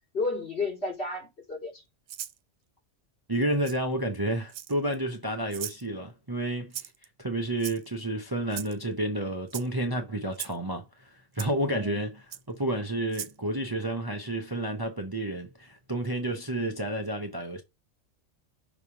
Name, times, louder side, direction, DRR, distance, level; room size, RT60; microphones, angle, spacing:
voice 1, 0.1-1.8 11.7-12.1, left 3 dB, 60° left, 3.8 m, -32 dB
Rattle (instrument), 2.1-2.4 3.6-3.8 4.5-4.9 5.5-5.8 6.7-7.1 7.6-8.0 8.5-8.8 9.5-9.7 10.3-10.6 11.4-11.5 12.3-12.4 13.1-13.4, right 11 dB, 80° right, 0.9 m, -38 dB
voice 2, 3.3-6.7 7.2-11.1 11.3-12.1 12.5-17.6, right 1 dB, 20° right, 0.8 m, -30 dB
6.0 x 3.5 x 4.6 m
omnidirectional pair, 1.2 m